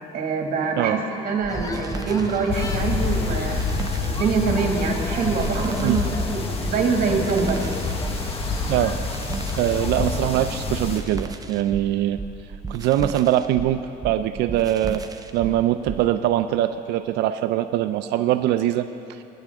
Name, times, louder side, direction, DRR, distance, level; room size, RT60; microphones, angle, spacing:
voice 1, 0.1-3.7 4.0-7.8, right 4 dB, 55° right, 1 dB, 2.0 m, -24 dB
sound 1, 1.4-16.1, right 4 dB, 20° right, 0.6 m, -34 dB
sound 2, 1.5-10.3, left 3 dB, 20° left, 1.0 m, -34 dB
sound 3, 2.5-11.0, left 4 dB, 35° left, 1.3 m, -28 dB
voice 2, 9.6-12.2 12.7-15.0 15.3-19.2, right 12 dB, 85° right, 10 dB, 0.5 m, -22 dB
21.5 x 10.0 x 3.6 m, 2.7 s
cardioid pair, 110°, 17 cm